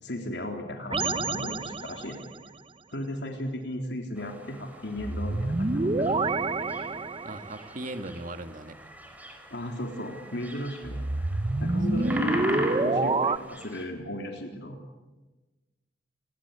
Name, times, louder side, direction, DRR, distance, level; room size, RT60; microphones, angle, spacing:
voice 1, 0.0-2.2 2.9-6.2 9.5-14.8, left 1 dB, 75° left, 3 dB, 3.6 m, -36 dB
sound 1, 0.9-2.3 5.0-7.6 10.8-13.4, right 2 dB, 30° right, 0.8 m, -27 dB
sound 2, 4.2-13.8, equal, 10° right, 4.8 m, -41 dB
voice 2, 7.2-8.8 12.0-12.2 12.5-12.6, right 1 dB, 50° right, 8 dB, 2.0 m, -38 dB
29.0 x 22.0 x 8.3 m, 1.2 s
head